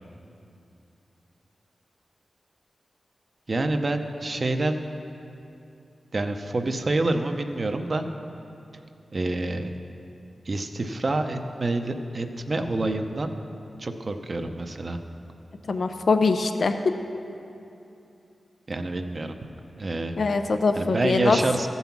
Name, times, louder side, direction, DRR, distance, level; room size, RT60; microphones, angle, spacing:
voice 1, 3.5-4.9 6.1-8.1 9.1-9.8 10.4-13.4 13.8-15.0 18.7-19.4 19.8-20.1 20.7-21.7, right 2 dB, 50° right, 6 dB, 0.7 m, -27 dB
voice 2, 15.7-16.7 20.2-21.4, left 4 dB, 70° left, 8 dB, 0.5 m, -22 dB
14.0 x 5.5 x 5.9 m, 2.7 s
cardioid pair, 60°, 0 cm